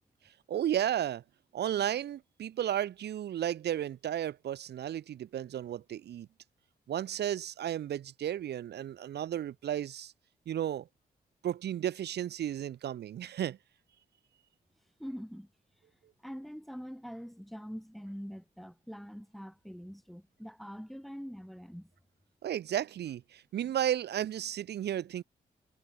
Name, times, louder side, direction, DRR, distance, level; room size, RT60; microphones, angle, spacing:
voice 1, 0.5-1.2 1.5-6.3 6.9-10.1 10.5-10.9 11.4-13.6 22.4-25.2, right 11 dB, 80° right, 0.9 m, -33 dB
voice 2, 15.0-15.5 16.2-21.9, equal, ahead, 2.6 m, -44 dB
cardioid pair, 55°, 17 cm